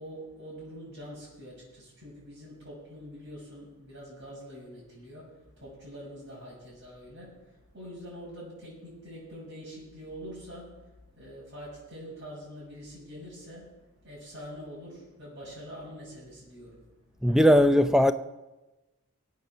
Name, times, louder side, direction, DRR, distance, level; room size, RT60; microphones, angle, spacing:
voice 1, 0.0-10.9 11.2-13.7 14.0-16.8, equal, 50° right, 6.6 m, -45 dB
voice 2, 17.2-18.1, equal, ahead, 0.5 m, -19 dB
22.5 x 8.5 x 6.3 m
head